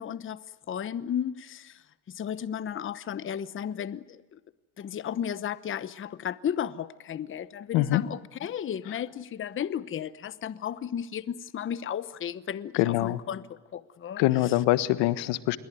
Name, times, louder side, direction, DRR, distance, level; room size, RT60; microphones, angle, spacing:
voice 1, 0.0-4.4 4.8-14.5, left 9 dB, 30° left, 16 dB, 1.0 m, -34 dB
voice 2, 12.7-13.2 14.2-15.6, left 16 dB, 80° left, 15 dB, 1.5 m, -24 dB
27.5 x 23.0 x 9.3 m, 1.1 s
cardioid pair, 130°, 41 cm